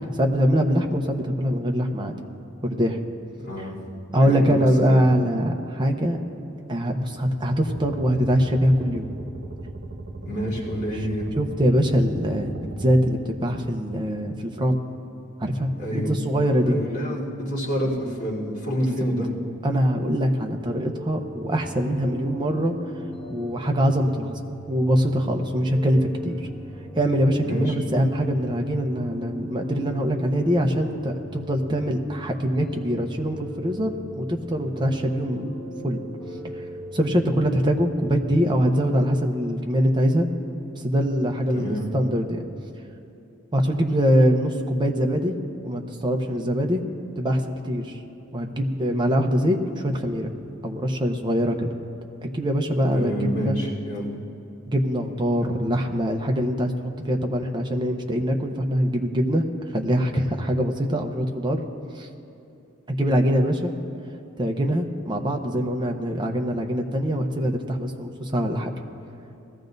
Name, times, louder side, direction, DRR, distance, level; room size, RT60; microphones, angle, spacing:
voice 1, 0.0-2.1 2.6-3.0 4.1-6.2 6.7-9.1 11.4-14.8 15.4-16.7 19.6-22.7 23.3-26.5 26.9-35.5 35.8-36.0 36.9-40.3 40.8-42.5 43.5-45.4 45.6-46.8 47.2-47.9 48.3-50.3 50.6-51.7 52.3-53.6 54.7-59.5 59.7-61.6 62.0-62.1 62.9-63.7 64.4-68.7, equal, 20° right, 2 dB, 0.8 m, -23 dB
voice 2, 3.4-3.7 4.1-5.1 10.2-11.3 15.8-16.1 16.6-19.3 27.4-27.7 41.5-41.9 52.9-54.2, equal, 50° left, -8 dB, 3.8 m, -28 dB
sound 1, 7.7-13.1, right 2 dB, 65° right, 1.5 m, -37 dB
sound 2, 20.7-38.3, right 1 dB, 10° left, 2.4 m, -39 dB
20.5 x 14.0 x 2.7 m, 2.8 s
head